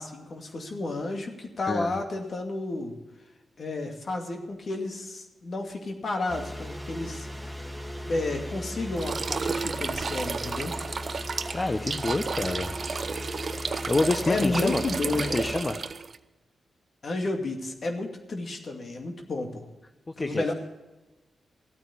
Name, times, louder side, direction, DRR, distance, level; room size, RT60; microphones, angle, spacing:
voice 1, 0.0-2.9 3.6-7.6 8.1-10.8 14.3-15.5 17.0-19.7 20.2-20.5, left 2 dB, 60° left, 3 dB, 2.4 m, -31 dB
voice 2, 1.7-2.0 11.5-12.8 13.9-14.8 15.2-15.8 20.1-20.5, left 2 dB, 35° left, 8 dB, 0.9 m, -27 dB
sound 1, 6.3-15.5, left 1 dB, ahead, 2.4 m, -38 dB
sound 2, 9.0-16.2, right 4 dB, 55° right, 0.7 m, -32 dB
15.0 x 9.2 x 7.2 m, 1.1 s
supercardioid pair, 45°, 0 cm